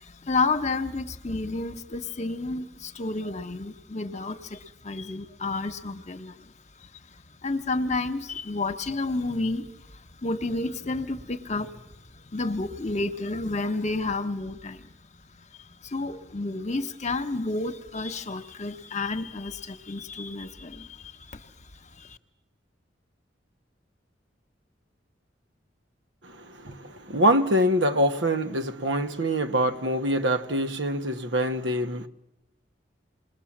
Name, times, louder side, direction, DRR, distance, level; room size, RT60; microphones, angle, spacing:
voice 1, 0.0-6.5 6.8-14.9 15.4-21.5 21.8-22.2, left 3 dB, 40° left, 1.2 m, -31 dB
voice 2, 26.2-32.1, equal, 75° right, 1.5 m, -25 dB
27.5 x 21.0 x 7.4 m
head